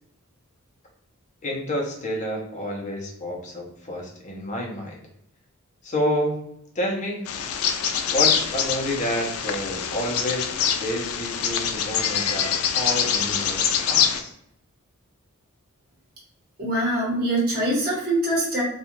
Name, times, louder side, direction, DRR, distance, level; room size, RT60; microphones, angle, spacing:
voice 1, 1.4-5.0 5.8-6.4 6.7-7.3 8.1-14.3, equal, 35° left, -1 dB, 0.7 m, -29 dB
Bird vocalization bird call bird song, 7.3-14.2, left 8 dB, 85° left, 0.4 m, -24 dB
voice 2, 16.6-18.6, right 1 dB, 45° right, -5 dB, 1.2 m, -23 dB
2.4 x 2.3 x 2.9 m, 0.75 s
head